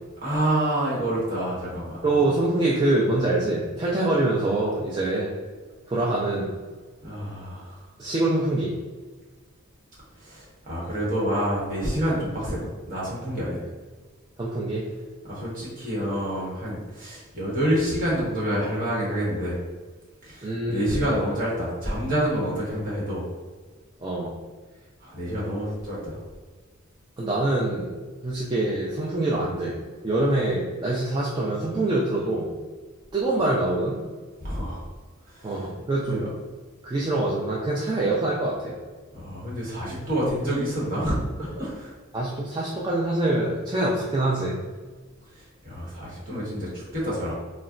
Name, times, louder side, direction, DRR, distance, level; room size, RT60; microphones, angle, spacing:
voice 1, 0.2-2.0 7.0-7.8 10.2-13.6 15.2-19.6 20.2-23.3 25.0-26.2 34.4-34.8 35.3-35.7 36.0-36.2 39.1-41.9 45.3-47.3, equal, 40° right, -7 dB, 1.2 m, -28 dB
voice 2, 2.0-5.3 5.9-6.5 8.0-8.7 14.4-14.8 20.4-21.0 24.0-24.3 27.2-27.9 28.2-29.7 30.0-32.5 33.1-34.0 35.4-36.3 36.8-38.7 42.1-44.6, right 2 dB, 20° right, -5 dB, 0.3 m, -25 dB
3.9 x 2.1 x 2.4 m, 1.4 s
head